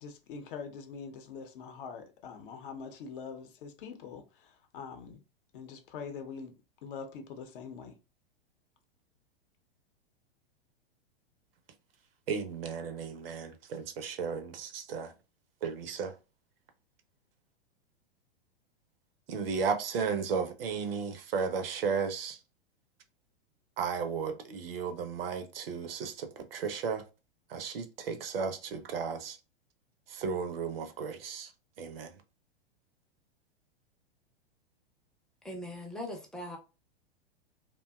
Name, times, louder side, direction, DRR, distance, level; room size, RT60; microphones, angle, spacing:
voice 1, 0.0-5.2 5.5-6.5 6.8-7.9, left 6 dB, 55° left, 0.7 m, -44 dB
voice 2, 12.3-15.1 15.6-16.2 19.3-22.4 23.8-27.0 27.5-29.4 30.1-31.5 31.8-32.2, right 5 dB, 65° right, 0.6 m, -34 dB
voice 3, 35.4-36.6, left 1 dB, ahead, 0.4 m, -40 dB
2.6 x 2.2 x 2.2 m
hypercardioid pair, 105°, 31 cm